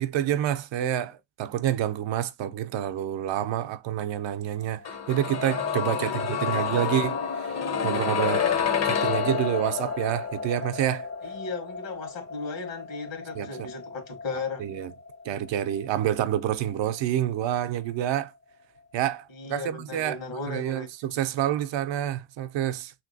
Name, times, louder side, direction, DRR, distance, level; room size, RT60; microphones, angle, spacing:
voice 1, 0.0-8.5 8.8-11.1 13.3-13.7 14.6-14.9 15.2-18.3 18.9-20.2 20.5-22.9, right 11 dB, 70° right, 0.6 m, -28 dB
sound 1, 4.8-16.7 17.0-17.1, left 7 dB, 35° left, 0.6 m, -30 dB
voice 2, 5.9-6.7 11.2-14.6 19.3-20.9, left 4 dB, 70° left, 1.4 m, -36 dB
3.1 x 2.9 x 2.7 m
cardioid pair, 90°, 46 cm